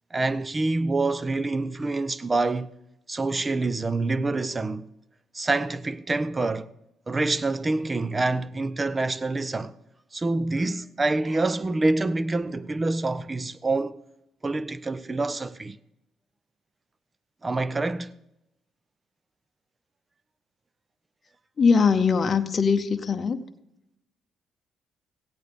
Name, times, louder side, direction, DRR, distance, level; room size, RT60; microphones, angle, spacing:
voice 1, 0.1-2.7 3.1-4.9 5.3-6.7 7.1-9.7 10.1-14.0 14.4-15.8 17.4-18.1, right 2 dB, 25° right, 0.6 m, -26 dB
voice 2, 21.6-23.4, left 5 dB, 40° left, 0.8 m, -21 dB
16.5 x 8.7 x 5.1 m
cardioid pair, 90°, 0 cm